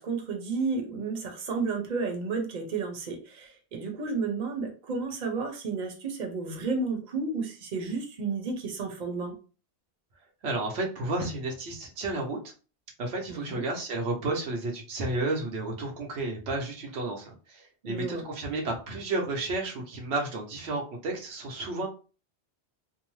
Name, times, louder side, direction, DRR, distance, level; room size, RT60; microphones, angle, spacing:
voice 1, 0.0-9.3 13.3-13.6 17.8-18.2, right 4 dB, 50° right, 2 dB, 0.8 m, -32 dB
voice 2, 10.4-12.4 13.0-21.9, right 2 dB, 85° right, 1 dB, 1.0 m, -32 dB
2.7 x 2.0 x 3.0 m, 0.35 s
omnidirectional pair, 1.1 m